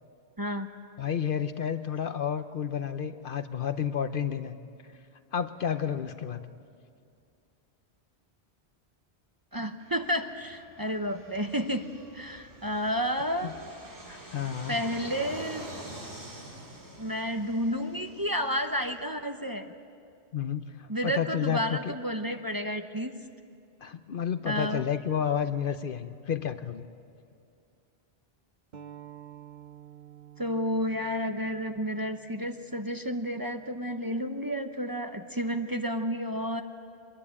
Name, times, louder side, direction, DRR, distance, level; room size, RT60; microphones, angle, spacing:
voice 1, 0.4-0.7 9.5-11.9 12.1-13.5 14.7-15.7 17.0-19.7 20.9-23.1 24.5-24.8 30.4-36.6, equal, 20° right, 6 dB, 0.9 m, -31 dB
voice 2, 1.0-4.5 5.3-6.4 13.4-13.5 14.1-14.8 20.3-21.8 23.8-26.9, left 8 dB, 60° left, 10 dB, 0.9 m, -31 dB
Fixed-wing aircraft airplane, 9.8-19.1, right 1 dB, 85° right, 3.4 m, -46 dB
sound 1, 28.7-33.9, right 10 dB, 50° right, 1.0 m, -51 dB
23.0 x 21.5 x 8.7 m, 2.4 s
omnidirectional pair, 1.1 m